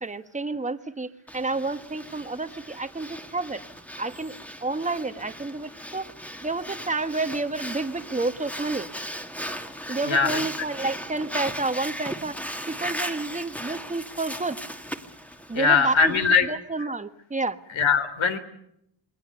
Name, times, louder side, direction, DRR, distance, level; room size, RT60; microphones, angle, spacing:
voice 1, 0.0-3.6 4.0-6.1 6.4-8.9 9.9-12.4 12.7-14.6 15.5-16.1 16.4-17.6, right 3 dB, 15° right, 9 dB, 1.3 m, -30 dB
Breathing, 1.3-16.3, equal, 5° left, 1.7 m, -37 dB
voice 2, 10.0-10.4 15.5-16.5 17.7-18.4, left 5 dB, 70° left, 8 dB, 3.8 m, -21 dB
27.5 x 21.5 x 6.8 m, 0.75 s
wide cardioid pair, 140°, 48 cm